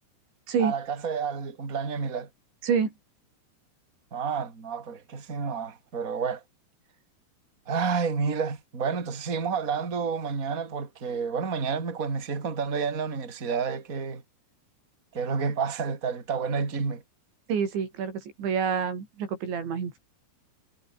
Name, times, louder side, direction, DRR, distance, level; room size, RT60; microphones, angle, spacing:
voice 1, 0.6-2.3 4.1-6.4 7.7-14.2 15.1-17.0, right 5 dB, 20° right, 3.2 m, -30 dB
voice 2, 17.5-20.0, right 6 dB, 90° right, 7.1 m, -27 dB
omnidirectional pair, 5.0 m